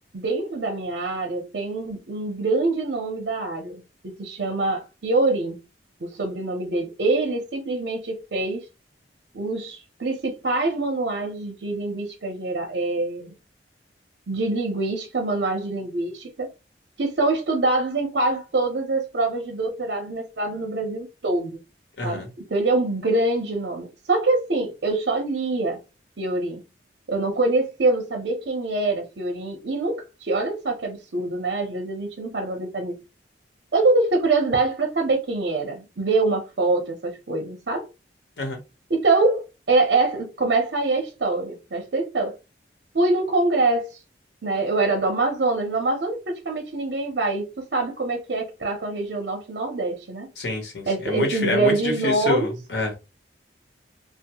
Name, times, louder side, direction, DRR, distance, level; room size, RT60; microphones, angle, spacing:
voice 1, 0.1-5.6 6.0-8.6 9.3-13.3 14.3-16.5 17.0-21.6 22.0-25.8 26.2-26.6 27.1-33.0 33.7-37.9 38.9-42.3 42.9-43.9 44.4-50.3 50.9-52.5, right 2 dB, 65° right, 0.7 m, -24 dB
voice 2, 22.0-22.3 38.4-38.6 50.4-53.0, left 2 dB, 70° left, 0.8 m, -27 dB
3.1 x 2.0 x 2.9 m
head